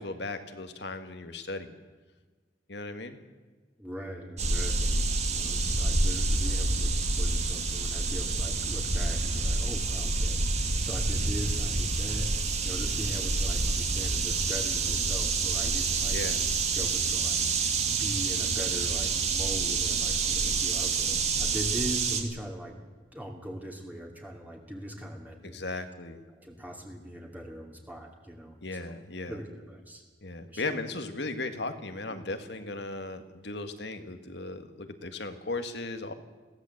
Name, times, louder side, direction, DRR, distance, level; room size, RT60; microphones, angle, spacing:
voice 1, 0.0-1.7 2.7-3.2 5.4-5.8 16.1-16.5 25.4-26.2 28.6-29.4 30.2-36.1, left 2 dB, 65° left, 8 dB, 1.9 m, -37 dB
voice 2, 3.8-12.3 12.6-16.5 16.7-22.8 23.1-25.6 26.4-28.9 29.3-30.0 30.5-30.6 32.1-32.3, equal, 10° right, 0 dB, 2.6 m, -40 dB
sound 1, 4.4-22.2, right 3 dB, 40° right, 2.4 m, -28 dB
21.5 x 16.5 x 7.9 m, 1.4 s
head